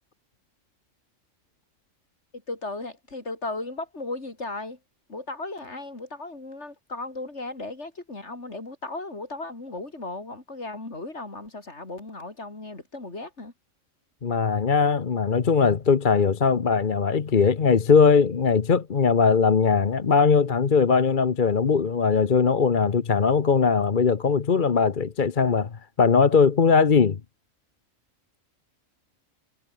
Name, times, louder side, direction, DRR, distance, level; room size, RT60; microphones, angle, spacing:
voice 1, 2.5-4.8 5.1-13.5, left 2 dB, 55° left, 4.3 m, -36 dB
voice 2, 14.2-25.7 26.0-27.2, left 5 dB, 40° left, 1.1 m, -20 dB
omnidirectional pair, 1.4 m